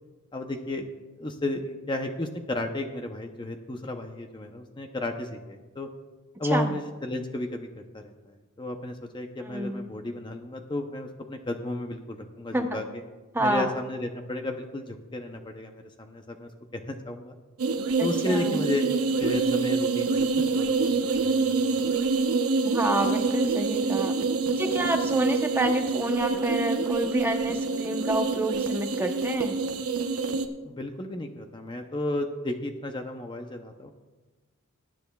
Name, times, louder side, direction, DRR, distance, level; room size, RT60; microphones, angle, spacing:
voice 1, 0.3-0.9 1.2-5.9 6.4-13.0 13.4-17.4 18.0-18.9 19.2-21.9 30.6-33.9, left 1 dB, 20° left, 5 dB, 0.6 m, -33 dB
voice 2, 9.4-9.8 12.5-12.8 13.3-13.7 18.0-18.7 22.6-24.1 24.5-29.6, right 1 dB, 10° right, 4 dB, 0.8 m, -28 dB
sound 1, 17.6-30.5, right 4 dB, 85° right, 0.9 m, -26 dB
21.0 x 10.0 x 2.3 m, 1.3 s
head